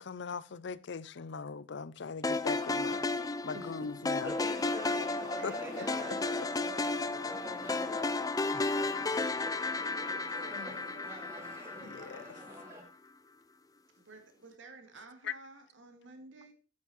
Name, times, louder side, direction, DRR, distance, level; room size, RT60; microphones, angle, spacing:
voice 1, 0.0-3.0 3.4-4.4 5.4-6.5 10.5-11.0 11.8-12.7 15.2-15.3, left 5 dB, 65° left, 0.5 m, -41 dB
sound 1, 2.2-12.5, left 3 dB, 20° left, 0.5 m, -33 dB
voice 2, 3.5-3.9 4.6-5.2 6.0-6.1 8.5-9.7 10.3-10.5, right 2 dB, 60° right, 0.9 m, -52 dB
sound 2, 4.2-12.8, equal, 15° right, 2.3 m, -46 dB
voice 3, 5.3-7.4 13.9-16.5, right 3 dB, 85° right, 2.2 m, -53 dB
8.6 x 8.3 x 4.3 m
head